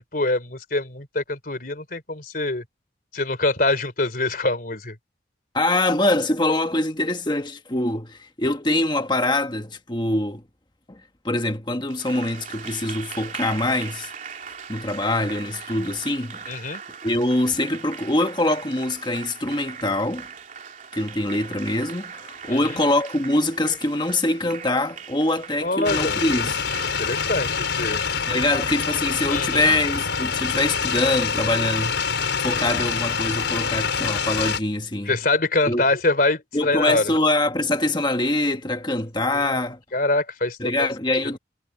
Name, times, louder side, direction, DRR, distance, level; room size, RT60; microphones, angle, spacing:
voice 1, 0.0-2.6 3.1-5.0 16.5-16.8 22.5-22.8 25.6-26.2 27.0-28.0 29.3-29.7 35.1-37.1 39.3-39.6 39.9-40.9 41.2-41.3, left 2 dB, 50° left, 3.7 m, -24 dB
voice 2, 5.5-10.4 10.9-11.0 11.2-14.1 14.7-16.5 17.0-20.3 20.9-26.6 28.3-32.0 32.4-35.2 35.7-35.8 36.5-39.8 40.6-41.4, left 1 dB, 25° left, 1.4 m, -24 dB
Applause, 11.9-29.7, right 6 dB, 45° right, 3.3 m, -40 dB
sound 1, 25.8-34.6, left 6 dB, 80° left, 5.0 m, -25 dB
head